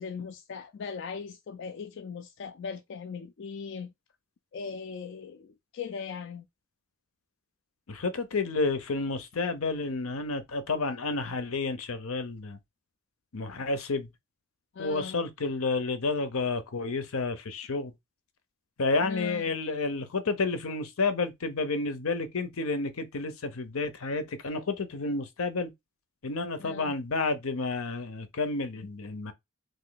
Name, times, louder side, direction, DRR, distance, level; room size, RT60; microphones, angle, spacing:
voice 1, 0.0-3.9 4.5-6.4 14.7-15.2 19.0-19.4 26.6-26.9, left 5 dB, 55° left, 0.3 m, -39 dB
voice 2, 7.9-12.6 13.3-14.1 14.8-17.9 18.8-25.7 26.2-29.3, left 3 dB, 80° left, 0.7 m, -30 dB
3.1 x 2.6 x 3.9 m
head